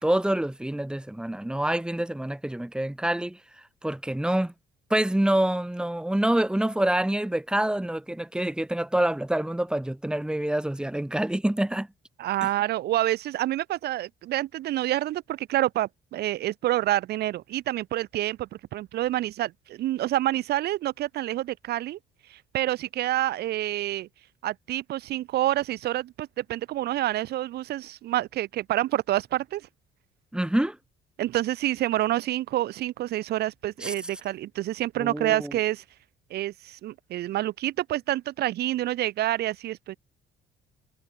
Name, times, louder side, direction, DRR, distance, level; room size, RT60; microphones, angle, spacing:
voice 1, 0.0-3.4 3.8-4.5 4.9-11.9 30.3-30.8 33.8-33.9 35.0-35.5, right 1 dB, 5° right, 3.6 m, -26 dB
voice 2, 12.2-22.0 22.3-24.1 24.4-29.7 31.2-35.8 36.3-40.0, right 14 dB, 70° right, 4.3 m, -28 dB
cardioid pair, 110°, 17 cm